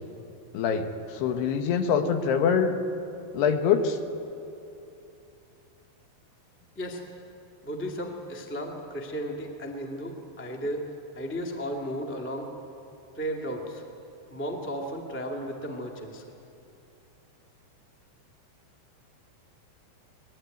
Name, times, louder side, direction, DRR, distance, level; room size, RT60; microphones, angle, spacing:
voice 1, 0.5-2.8 3.3-4.0, left 6 dB, 75° left, 7 dB, 3.2 m, -24 dB
voice 2, 6.7-7.2 7.6-12.5 13.1-13.8 14.3-16.2, equal, 10° left, 1 dB, 0.7 m, -34 dB
23.5 x 20.5 x 9.2 m, 2.8 s
omnidirectional pair, 4.8 m